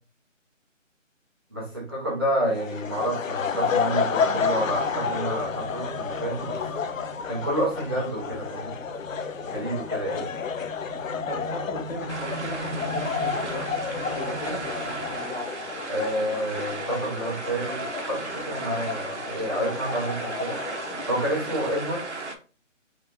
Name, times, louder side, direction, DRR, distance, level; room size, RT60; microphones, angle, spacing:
voice 1, 1.5-6.6 7.3-8.7 9.4-10.2 15.9-20.6 21.1-22.0, right 1 dB, 20° right, -6 dB, 0.9 m, -29 dB
sound 1, 2.5-21.8, left 6 dB, 80° left, 0.6 m, -31 dB
sound 2, 4.1-15.2, right 1 dB, 45° right, 1.3 m, -40 dB
voice 2, 11.3-15.5, left 1 dB, 50° left, 0 dB, 1.4 m, -37 dB
sound 3, 12.1-22.3, right 3 dB, 60° right, 1.0 m, -35 dB
3.8 x 3.3 x 3.4 m, 0.35 s
hypercardioid pair, 180°, 39 cm